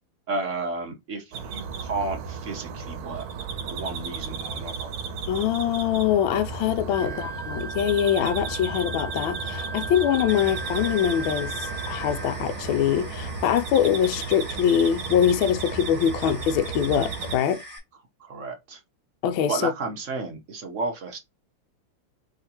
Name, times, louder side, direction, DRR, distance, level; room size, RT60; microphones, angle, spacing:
voice 1, 0.3-5.0 7.0-7.3 18.2-18.8 19.5-21.2, right 3 dB, 45° right, 1.0 m, -32 dB
china cricket, 1.3-17.4, right 5 dB, 75° right, 1.6 m, -34 dB
voice 2, 5.3-17.6 19.2-19.7, left 9 dB, 75° left, 1.3 m, -23 dB
Wind instrument woodwind instrument, 6.9-12.4, right 2 dB, 30° right, 0.7 m, -37 dB
sound 1, 10.3-17.8, equal, 5° right, 1.1 m, -43 dB
4.9 x 3.2 x 2.9 m
omnidirectional pair, 2.4 m